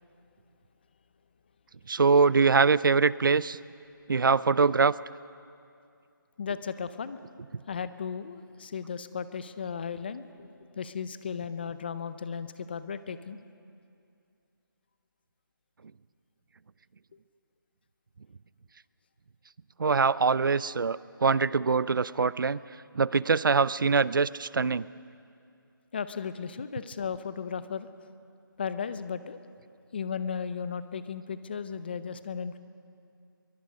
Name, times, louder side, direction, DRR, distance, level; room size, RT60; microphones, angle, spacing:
voice 1, 1.9-3.6 4.1-4.9 19.8-22.6 23.0-24.8, right 5 dB, 65° right, 19 dB, 0.5 m, -23 dB
voice 2, 6.4-7.2 7.7-13.4 25.9-27.9 28.6-29.4 29.9-32.6, left 6 dB, 25° left, 13 dB, 0.6 m, -35 dB
24.5 x 23.0 x 5.2 m, 2.4 s
figure-of-eight pair, 170°, 12 cm